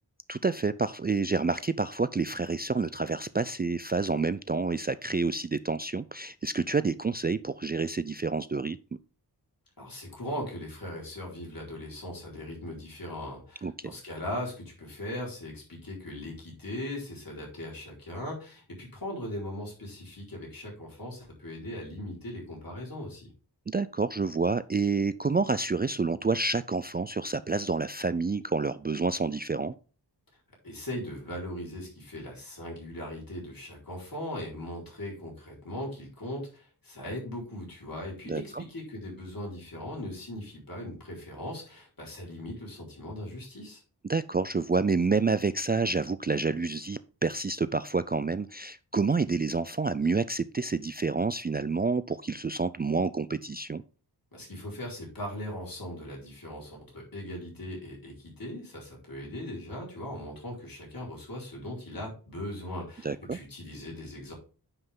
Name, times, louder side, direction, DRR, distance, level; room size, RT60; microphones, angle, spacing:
voice 1, 0.3-8.8 13.6-13.7 23.7-29.7 38.3-38.6 44.0-53.8 63.0-63.4, right 4 dB, 25° right, 14 dB, 0.4 m, -28 dB
voice 2, 9.8-23.3 30.6-43.8 54.3-64.3, left 1 dB, 55° left, -3 dB, 4.6 m, -39 dB
9.6 x 5.7 x 3.7 m, 0.37 s
wide cardioid pair, 75°, 41 cm